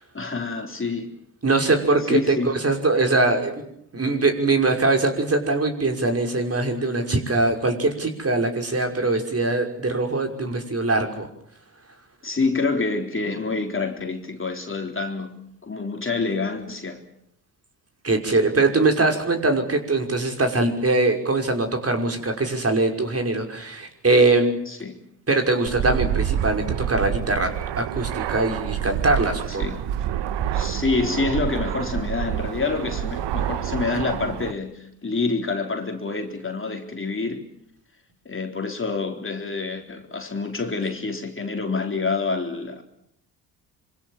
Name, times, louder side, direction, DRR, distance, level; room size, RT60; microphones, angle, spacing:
voice 1, 0.1-1.1 2.1-2.5 12.2-17.0 24.7-25.0 29.5-29.8 30.5-37.4 38.3-42.8, left 4 dB, 25° left, 3.9 m, -27 dB
voice 2, 1.4-3.6 3.9-11.3 18.0-24.6 25.3-29.7, right 2 dB, 30° right, 5.8 m, -22 dB
Fixed-wing aircraft airplane, 25.7-34.5, right 10 dB, 60° right, 1.5 m, -28 dB
26.5 x 24.5 x 7.4 m
hypercardioid pair, 50°, 47 cm